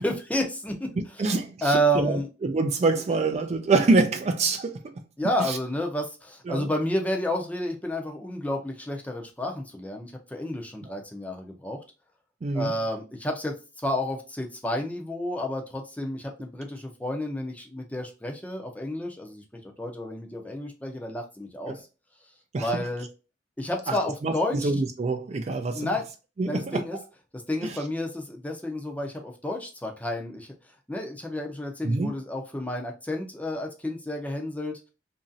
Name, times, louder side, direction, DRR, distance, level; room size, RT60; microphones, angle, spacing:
voice 1, 0.0-0.9 1.6-2.3 5.2-11.8 12.5-13.5 13.8-21.8 22.6-23.1 23.6-24.7 25.7-26.0 26.5-27.0 27.3-30.5 30.9-34.9, equal, 10° left, 0.6 m, -30 dB
voice 2, 1.0-4.8 5.4-5.6 6.5-6.7 12.4-12.7 21.7-21.8 22.5-22.8 23.9-26.0 26.4-26.8 27.6-27.8 31.8-32.1, right 3 dB, 35° right, 0.3 m, -26 dB
2.9 x 2.6 x 2.5 m
head